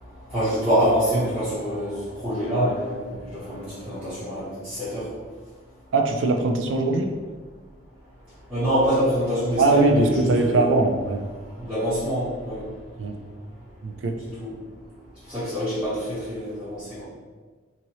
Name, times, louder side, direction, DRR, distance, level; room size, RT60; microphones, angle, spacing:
voice 1, 0.1-5.1 8.5-10.7 11.4-12.7 14.2-14.6 15.2-17.1, equal, 5° right, -15 dB, 0.8 m, -25 dB
voice 2, 5.9-7.1 9.6-11.2 13.0-13.2 13.8-14.2, right 2 dB, 75° right, 3 dB, 0.4 m, -21 dB
2.8 x 2.7 x 2.9 m, 1.4 s
head